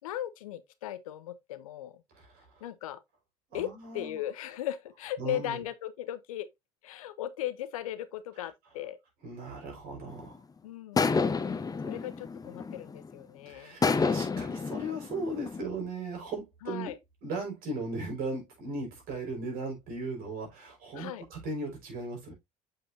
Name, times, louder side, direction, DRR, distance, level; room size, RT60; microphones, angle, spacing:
voice 1, 0.0-2.0 2.6-3.0 3.5-6.5 6.8-9.0 10.6-13.8 16.6-17.0 20.9-21.2, left 12 dB, 75° left, 0.8 m, -37 dB
voice 2, 2.1-2.5 3.5-4.2 5.2-5.6 9.2-10.4 13.4-16.9 17.2-22.3, right 2 dB, 55° right, 5.0 m, -37 dB
sound 1, 10.1-10.4 11.0-13.1 13.8-15.6, left 4 dB, 20° left, 0.9 m, -29 dB
7.9 x 5.7 x 2.7 m
hypercardioid pair, 65°, 18 cm